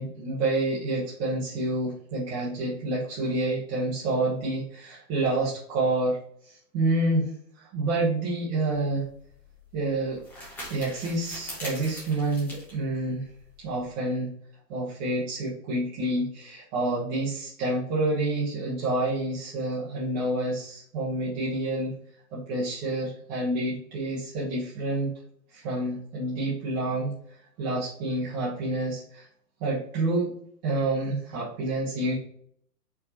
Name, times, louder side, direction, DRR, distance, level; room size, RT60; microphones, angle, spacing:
voice 1, 0.0-6.2 6.4-9.1 9.7-10.2 10.7-13.3 13.6-14.3 14.7-21.9 22.3-25.1 25.5-29.3 29.6-30.4 30.6-32.1, right 2 dB, 25° right, -8 dB, 1.1 m, -28 dB
sound 1, 8.7-13.9, left 1 dB, 5° left, 1.1 m, -43 dB
4.6 x 3.7 x 2.8 m, 0.64 s
hypercardioid pair, 160°, 48 cm